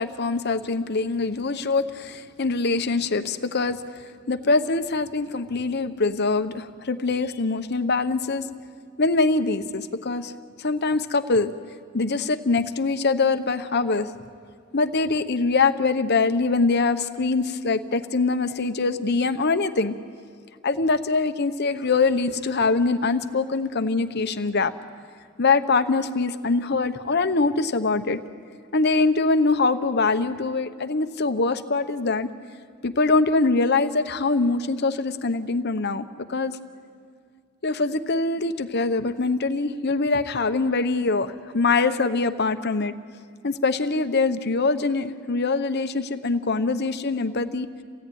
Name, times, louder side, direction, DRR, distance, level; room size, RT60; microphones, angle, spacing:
voice 1, 0.0-3.8 4.3-8.4 9.0-10.3 10.6-11.5 11.9-14.1 14.7-20.0 20.6-24.7 25.4-28.2 28.7-32.3 32.8-36.5 37.6-42.9 43.4-47.7, left 3 dB, 50° left, 10 dB, 0.9 m, -23 dB
28.5 x 17.0 x 9.4 m, 2.1 s
head